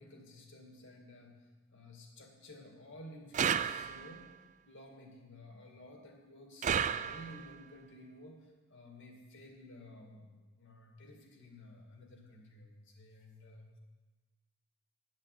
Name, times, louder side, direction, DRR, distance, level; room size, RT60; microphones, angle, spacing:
voice 1, 0.0-4.3 4.7-10.3 10.6-13.8, left 1 dB, 60° left, 2 dB, 2.2 m, -53 dB
sound 1, 3.3-4.3 6.6-7.6, right 7 dB, 35° right, 0.3 m, -33 dB
10.5 x 7.4 x 8.4 m, 1.2 s
head